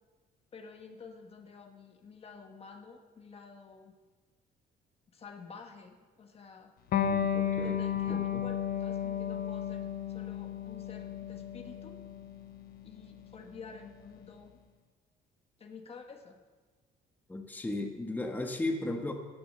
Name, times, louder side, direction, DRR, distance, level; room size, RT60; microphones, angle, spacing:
voice 1, 0.5-3.9 5.1-6.7 7.6-12.0 12.8-14.5 15.6-16.4, left 5 dB, 35° left, 4 dB, 1.5 m, -50 dB
Electric guitar, 6.9-14.1, left 10 dB, 60° left, 1.0 m, -34 dB
voice 2, 7.0-7.8 8.1-8.4 17.3-19.1, left 2 dB, 10° left, 3 dB, 1.4 m, -35 dB
16.0 x 6.8 x 7.8 m, 1.4 s
cardioid pair, 110°, 17 cm